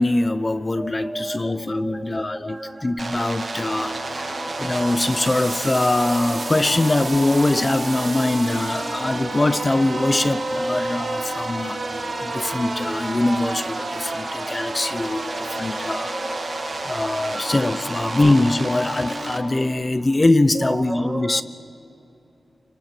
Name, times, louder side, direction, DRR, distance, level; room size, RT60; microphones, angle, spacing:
voice 1, 0.0-16.2 16.8-21.4, left 2 dB, 25° left, 12 dB, 0.8 m, -22 dB
voice 2, 0.8-2.8 4.1-4.8 14.4-14.5 15.6-17.6 18.1-18.3 20.9-21.4, right 2 dB, 20° right, 13 dB, 0.4 m, -35 dB
sound 1, 3.0-19.4, right 3 dB, 45° right, 2.0 m, -31 dB
sound 2, 3.6-19.6, left 1 dB, 45° left, 3.2 m, -35 dB
29.0 x 25.0 x 6.1 m, 3.0 s
wide cardioid pair, 130°, 0 cm